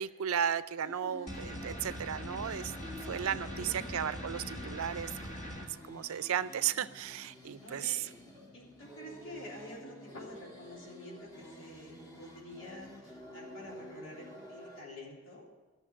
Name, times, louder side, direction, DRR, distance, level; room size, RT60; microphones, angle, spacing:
voice 1, 0.0-2.7 3.1-5.4 5.9-8.0, right 9 dB, 80° right, 16 dB, 0.5 m, -34 dB
sound 1, 0.8-14.8, equal, 20° left, 1.5 m, -50 dB
sound 2, 1.3-5.7, equal, 35° left, 1.7 m, -42 dB
voice 2, 3.4-3.8 7.6-8.0 8.5-15.5, left 1 dB, 70° left, -5 dB, 3.4 m, -49 dB
12.5 x 6.6 x 9.5 m, 1.2 s
head